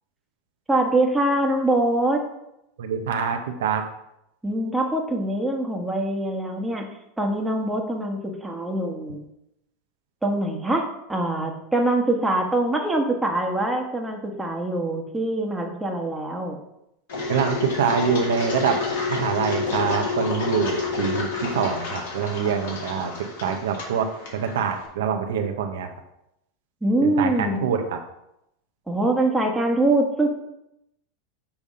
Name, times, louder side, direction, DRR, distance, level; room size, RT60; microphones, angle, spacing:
voice 1, 0.7-2.2 4.4-6.9 7.2-9.3 10.2-10.8 11.1-16.6 26.8-27.6 28.9-30.3, right 1 dB, 10° right, 1 dB, 1.3 m, -23 dB
voice 2, 2.8-3.8 17.3-18.8 19.1-23.1 23.4-25.9 27.2-28.0, right 7 dB, 75° right, 5 dB, 0.7 m, -25 dB
Engine, 17.1-24.8, left 4 dB, 70° left, 2.3 m, -29 dB
7.0 x 3.5 x 5.4 m, 0.84 s
hypercardioid pair, 100°, 0 cm